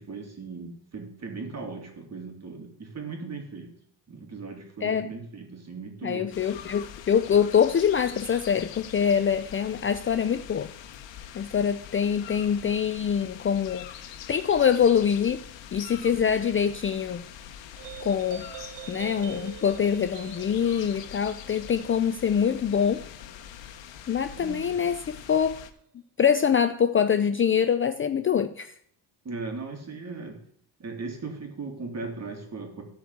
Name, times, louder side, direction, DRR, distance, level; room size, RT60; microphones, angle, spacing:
voice 1, 0.0-3.7 4.1-6.4 24.4-24.8 29.2-30.4 30.8-32.8, right 4 dB, 35° right, 4 dB, 2.6 m, -38 dB
voice 2, 4.8-5.1 6.0-10.7 11.4-15.4 15.7-17.2 18.0-18.5 18.9-23.1 24.1-25.6 26.2-28.7, left 7 dB, 30° left, 10 dB, 0.4 m, -24 dB
sound 1, 6.3-25.7, left 10 dB, 80° left, 1.1 m, -44 dB
sound 2, 17.8-24.6, right 10 dB, 75° right, 1.1 m, -46 dB
13.5 x 4.7 x 8.0 m, 0.64 s
cardioid pair, 125°, 44 cm